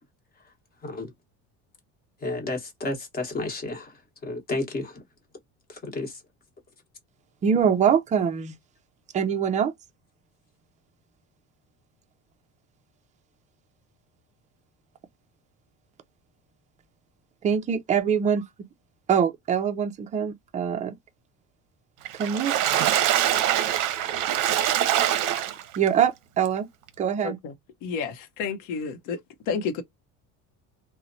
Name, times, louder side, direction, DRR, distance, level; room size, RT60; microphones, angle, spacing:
voice 1, 2.2-3.9 4.2-5.0 5.8-6.1, left 2 dB, 25° left, 1.1 m, -31 dB
voice 2, 7.4-8.6 9.1-9.7 17.4-18.5 19.1-21.0 22.1-22.6 25.8-26.7 27.0-27.4, right 7 dB, 20° right, 0.3 m, -23 dB
Water / Splash splatter, 22.1-25.9 26.5-26.6 26.9-27.0, right 11 dB, 60° right, 0.6 m, -24 dB
voice 3, 27.2-27.5 27.8-29.2 29.5-29.8, left 5 dB, 60° left, 0.7 m, -30 dB
2.8 x 2.1 x 2.6 m
cardioid pair, 140°, 36 cm